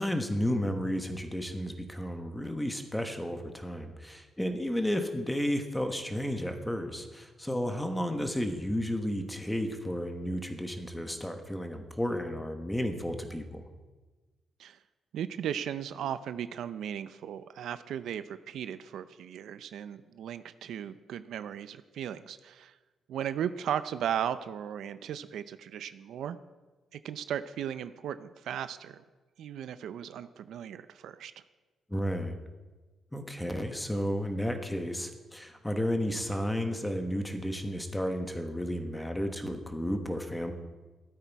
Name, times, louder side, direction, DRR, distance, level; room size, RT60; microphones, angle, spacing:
voice 1, 0.0-13.6 31.9-32.4 33.1-40.5, equal, 5° left, 5 dB, 1.2 m, -32 dB
voice 2, 15.1-22.7 23.1-26.4 26.9-29.0 29.4-31.3, right 9 dB, 75° right, 13 dB, 0.6 m, -36 dB
15.0 x 12.5 x 4.7 m, 1.3 s
cardioid pair, 160°, 0 cm